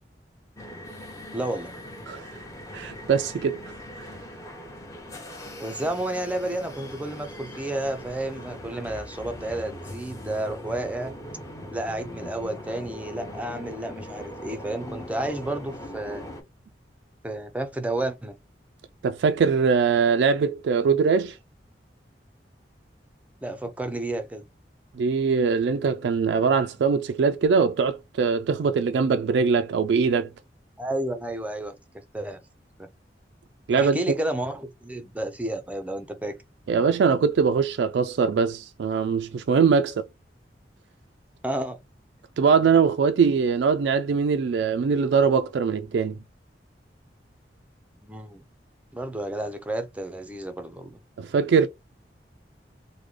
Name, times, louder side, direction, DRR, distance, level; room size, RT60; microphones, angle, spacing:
sound 1, 0.6-16.4, left 1 dB, 20° left, 0.8 m, -40 dB
voice 1, 1.3-1.7 5.6-11.1 11.7-16.3 17.2-18.4 23.4-24.4 30.8-32.4 32.8-32.9 33.8-36.4 41.4-41.8 48.0-48.4 48.9-51.0, right 1 dB, 10° right, 0.5 m, -31 dB
voice 2, 2.7-3.6 19.0-21.4 25.0-30.3 33.7-34.0 36.7-40.1 42.4-46.2 51.2-51.7, right 5 dB, 80° right, 0.3 m, -22 dB
3.6 x 2.1 x 3.2 m
head